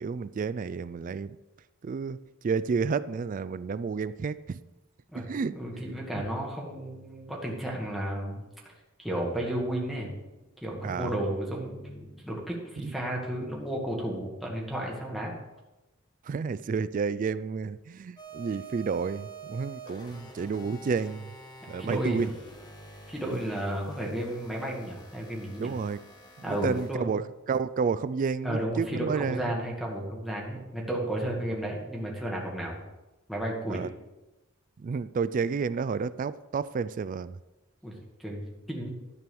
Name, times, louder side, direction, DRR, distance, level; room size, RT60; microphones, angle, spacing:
voice 1, 0.0-1.4 1.8-4.6 5.1-5.6 6.1-6.2 10.8-11.1 12.8-12.9 16.3-21.3 21.7-22.3 25.6-26.0 26.5-29.5 33.7-33.9 34.8-37.4, right 5 dB, 40° right, 17 dB, 0.3 m, -31 dB
voice 2, 5.5-8.4 9.0-10.1 10.6-15.3 21.8-22.2 23.1-25.7 26.4-27.1 28.4-32.8 33.3-33.8 37.8-37.9 38.2-38.9, right 1 dB, ahead, -4 dB, 2.1 m, -33 dB
sound 1, 18.2-27.0, right 3 dB, 20° left, 1.2 m, -47 dB
12.5 x 4.6 x 6.9 m, 1.0 s
head